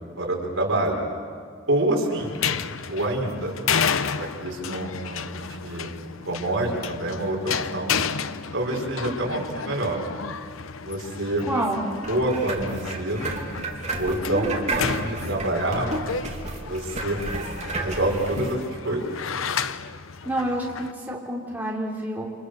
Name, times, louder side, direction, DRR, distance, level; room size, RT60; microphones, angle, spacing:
voice 1, 0.2-1.1 1.7-2.3 2.9-3.6 4.2-7.9 8.5-10.0 10.8-11.5 12.1-13.4 14.0-15.9 16.6-17.2 17.8-19.1, right 1 dB, 75° right, 0 dB, 5.4 m, -27 dB
sound 1, 2.2-20.9, left 6 dB, 90° left, 0.9 m, -32 dB
voice 2, 11.5-11.9 14.3-14.8 20.2-22.3, right 1 dB, 10° right, -3 dB, 3.5 m, -28 dB
sound 2, 12.0-18.5, right 2 dB, 35° right, 3.1 m, -33 dB
29.5 x 27.5 x 6.8 m, 2.1 s
head